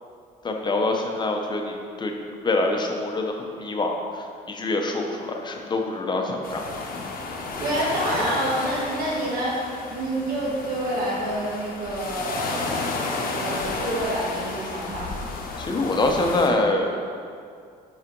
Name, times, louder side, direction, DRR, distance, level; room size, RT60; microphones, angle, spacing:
voice 1, 0.4-2.1 2.4-6.6 15.6-17.0, left 2 dB, 25° left, 2 dB, 0.8 m, -25 dB
sound 1, 6.4-16.5, left 3 dB, 60° left, 1.0 m, -32 dB
voice 2, 7.6-9.6 9.9-12.9 13.4-15.3, right 1 dB, 60° right, -5 dB, 1.6 m, -27 dB
5.6 x 4.9 x 5.3 m, 2.3 s
cardioid pair, 110°, 17 cm